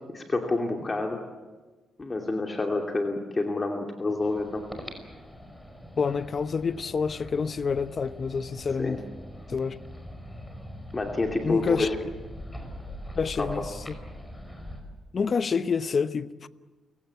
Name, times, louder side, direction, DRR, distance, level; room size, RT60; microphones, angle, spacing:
voice 1, 0.1-1.2 2.0-4.6 8.8-9.0 10.9-12.0 13.4-13.5, left 2 dB, 30° left, 2.7 m, -28 dB
sound 1, 4.2-14.8, equal, 10° left, 5.4 m, -42 dB
voice 2, 6.0-9.0 9.5-9.8 11.4-11.9 13.2-13.7 15.1-16.5, left 5 dB, 45° left, 0.9 m, -28 dB
29.0 x 17.5 x 8.3 m
cardioid pair, 85°, 0 cm